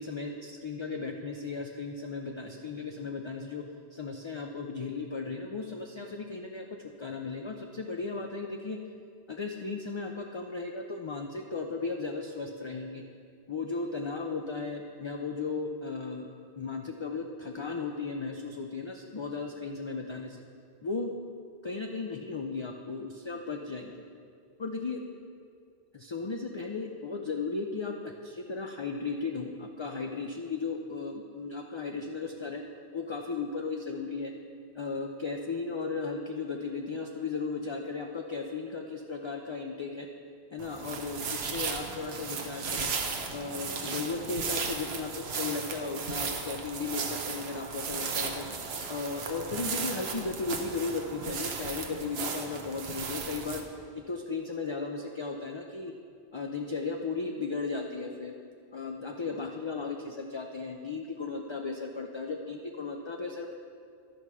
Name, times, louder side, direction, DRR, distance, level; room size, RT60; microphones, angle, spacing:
voice 1, 0.0-3.6 3.9-6.6 7.0-8.8 9.3-13.0 13.5-16.3 16.5-20.4 20.8-21.1 21.6-23.9 24.6-25.0 25.9-32.6 32.9-34.3 34.7-40.1 40.5-42.9 43.3-48.5 48.9-53.6 54.1-55.9 56.3-58.3 58.7-63.5, left 4 dB, 45° left, 2 dB, 0.4 m, -35 dB
sound 1, 40.6-53.6, right 5 dB, 80° right, 1.0 m, -35 dB
11.5 x 5.6 x 4.7 m, 2.3 s
omnidirectional pair, 1.1 m